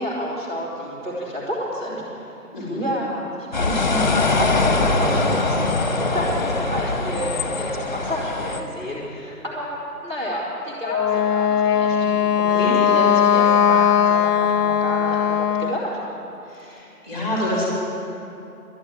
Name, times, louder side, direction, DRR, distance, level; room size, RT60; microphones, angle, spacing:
voice 1, 0.0-2.0 2.6-12.0 12.5-15.9, equal, 30° right, -9 dB, 2.7 m, -30 dB
voice 2, 2.5-2.8 12.0-12.8 16.5-17.7, left 1 dB, 10° right, -8 dB, 3.1 m, -28 dB
sound 1, 3.5-8.6, left 3 dB, 30° left, 1.0 m, -22 dB
Wind instrument woodwind instrument, 10.9-15.8, left 8 dB, 80° left, 0.6 m, -19 dB
12.0 x 10.0 x 9.7 m, 2.8 s
hypercardioid pair, 175°, 46 cm